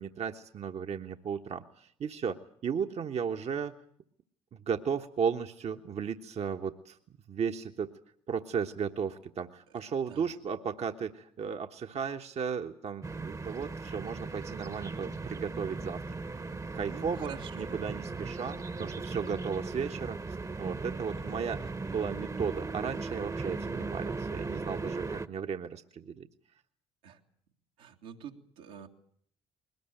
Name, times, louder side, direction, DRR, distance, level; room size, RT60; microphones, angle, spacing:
voice 1, 0.0-3.7 4.6-7.0 7.3-7.9 8.3-16.0 16.7-26.3, right 6 dB, 50° right, 5 dB, 1.3 m, -35 dB
sound 1, 13.0-25.3, right 3 dB, 25° right, 1.2 m, -38 dB
voice 2, 16.8-17.7 27.0-27.2 27.8-28.9, right 8 dB, 80° right, 1 dB, 2.3 m, -47 dB
21.5 x 19.0 x 9.1 m, 0.63 s
hypercardioid pair, 55°, 14 cm